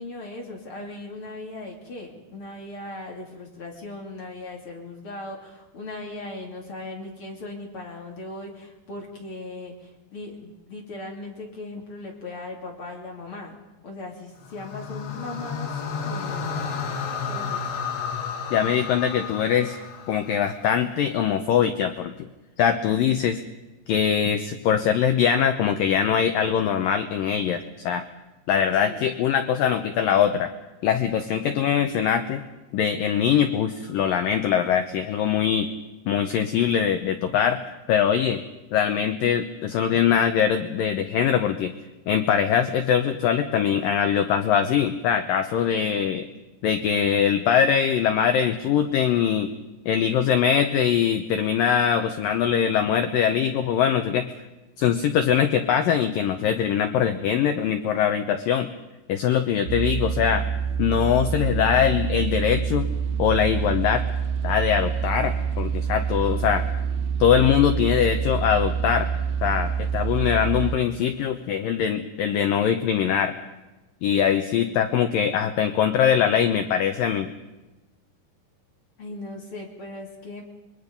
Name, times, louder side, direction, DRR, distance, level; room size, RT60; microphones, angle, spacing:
voice 1, 0.0-15.7 16.0-16.5 17.2-17.8 28.8-29.0 79.0-80.4, left 2 dB, 35° left, 0 dB, 2.9 m, -38 dB
sound 1, 14.4-20.7, left 6 dB, 70° left, 4.1 m, -32 dB
voice 2, 18.5-19.8 20.1-22.3 22.6-23.4 23.9-28.1 28.5-30.5 30.8-32.4 32.7-35.7 36.1-37.6 37.9-38.4 38.7-41.7 42.1-46.3 46.6-49.5 49.9-54.3 54.8-58.7 59.1-60.4 60.8-62.9 63.2-64.0 64.4-66.6 67.2-69.1 69.4-73.3 74.0-77.3, left 8 dB, 90° left, 7 dB, 2.0 m, -22 dB
sound 2, 59.7-70.8, right 6 dB, 65° right, 3.3 m, -26 dB
26.5 x 22.0 x 5.3 m, 1.1 s
omnidirectional pair, 5.2 m